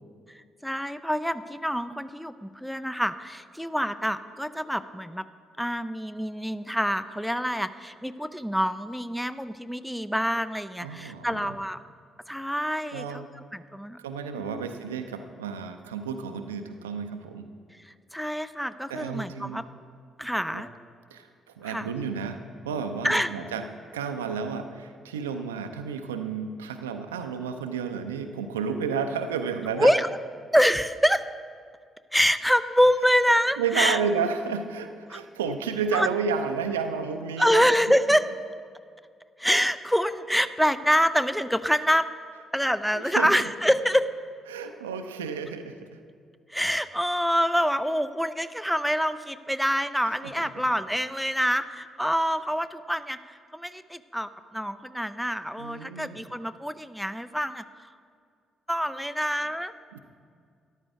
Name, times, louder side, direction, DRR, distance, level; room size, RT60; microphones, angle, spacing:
voice 1, 0.6-5.2 5.6-11.8 12.3-13.2 13.5-14.0 14.3-14.6 18.1-19.6 20.2-20.7 21.6-21.9 23.0-23.3 29.8-30.1 30.5-31.2 32.1-34.0 35.1-35.2 35.9-36.1 37.4-38.3 39.4-42.1 42.5-44.1 46.5-53.2 53.5-57.6 58.7-59.7, equal, ahead, 13 dB, 0.5 m, -26 dB
voice 2, 10.8-11.5 12.9-13.3 14.0-17.4 18.9-19.7 20.5-20.6 21.1-21.3 21.6-22.4 22.6-23.7 23.9-29.9 33.6-37.7 42.9-43.3 44.5-45.7 50.4-50.5 55.6-56.2 59.9-60.0, right 6 dB, 75° right, 7 dB, 0.5 m, -31 dB
13.5 x 11.5 x 3.6 m, 2.2 s
figure-of-eight pair, 40°, 0 cm